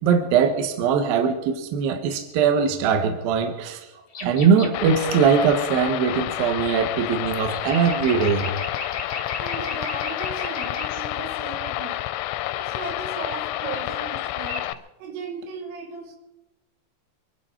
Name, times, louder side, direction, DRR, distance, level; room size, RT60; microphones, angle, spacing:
voice 1, 0.0-3.8 4.2-8.5, right 6 dB, 60° right, 6 dB, 2.7 m, -21 dB
voice 2, 3.9-4.3 9.4-12.1 12.5-14.7 15.0-16.2, right 5 dB, 85° right, 3 dB, 4.7 m, -37 dB
sound 1, 4.1-4.7 7.4-11.0 13.6-14.1 14.4-14.7, left 2 dB, 60° left, 0.9 m, -36 dB
sound 2, 4.7-14.7, left 15 dB, 90° left, 3.3 m, -29 dB
25.0 x 11.5 x 4.5 m, 0.99 s
omnidirectional pair, 5.7 m